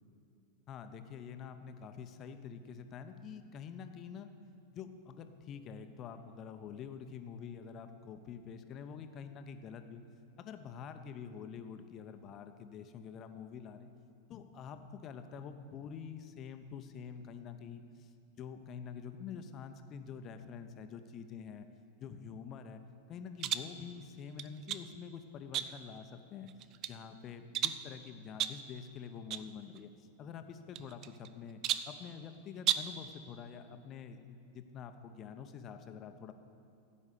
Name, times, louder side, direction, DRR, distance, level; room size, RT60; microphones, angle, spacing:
voice 1, 0.7-4.3 4.7-10.0 10.4-13.9 14.3-18.1 18.4-21.7 22.0-22.8 23.1-26.5 26.9-31.6 31.9-36.3, left 7 dB, 30° left, 8 dB, 0.8 m, -47 dB
sound 1, 23.4-23.8 24.4-24.9 25.5-26.0 26.5-27.0 27.5-27.9 28.4-28.7 29.3-29.5 29.8-29.9 30.7-31.3 31.6-32.0 32.6-33.0, right 11 dB, 35° right, 0.4 m, -35 dB
15.5 x 5.4 x 8.4 m, 2.5 s
figure-of-eight pair, 90°, 0 cm